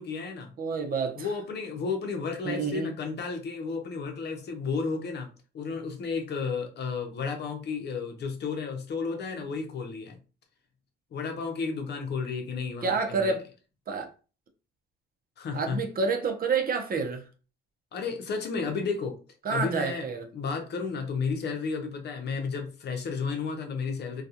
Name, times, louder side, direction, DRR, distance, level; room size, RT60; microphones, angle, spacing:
voice 1, 0.0-0.5 1.2-5.3 5.5-10.2 11.1-13.4 15.4-15.8 17.9-19.2 19.5-20.1 20.3-24.2, left 5 dB, 55° left, 0.7 m, -32 dB
voice 2, 0.6-1.3 2.4-2.9 12.8-13.5 13.9-14.1 15.5-17.2 19.4-20.2, right 4 dB, 45° right, 0.7 m, -28 dB
2.3 x 2.3 x 2.8 m
cardioid pair, 90°, 20 cm